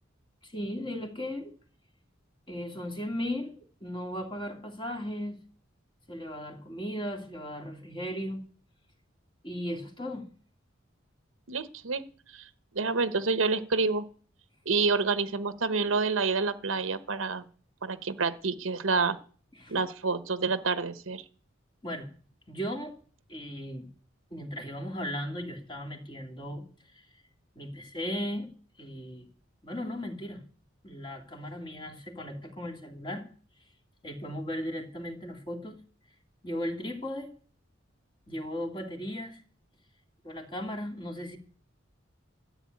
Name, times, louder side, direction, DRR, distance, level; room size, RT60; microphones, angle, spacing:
voice 1, 0.4-1.5 2.5-5.4 6.1-8.4 9.4-10.3 19.5-19.8 21.8-22.1 22.5-23.0 23.3-23.9 24.3-26.6 26.9-27.2 27.6-28.5 28.8-29.3 29.6-30.4 30.8-33.2 34.0-35.8 36.4-37.3 38.3-39.4 40.2-41.4, equal, 25° left, 4 dB, 2.4 m, -36 dB
voice 2, 11.5-12.0 12.3-12.4 12.7-14.1 14.7-17.4 17.8-19.2 19.7-21.2, right 4 dB, 90° right, 12 dB, 1.0 m, -28 dB
13.5 x 7.9 x 9.6 m, 0.43 s
head